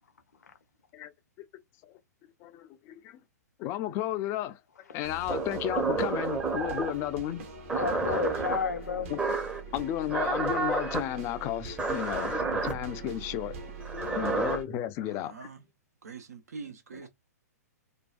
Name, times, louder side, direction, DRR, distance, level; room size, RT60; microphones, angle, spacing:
voice 1, 2.4-3.2 3.6-4.6 4.9-7.4 9.1-9.2 9.7-13.6 13.9-15.5, left 12 dB, 30° left, 0.4 m, -33 dB
sound 1, 5.0-14.6, right 3 dB, 50° right, 0.8 m, -43 dB
sound 2, 5.3-7.0 7.7-8.6 9.2-9.6 10.1-11.0 11.8-12.7 13.8-14.6, right 4 dB, 10° right, 0.6 m, -30 dB
voice 2, 7.7-9.1 14.0-14.4 16.9-17.0, left 6 dB, 70° left, 0.6 m, -33 dB
voice 3, 15.0-15.6 16.0-17.1, right 5 dB, 65° right, 0.5 m, -44 dB
2.6 x 2.2 x 2.3 m
figure-of-eight pair, 110°, 9 cm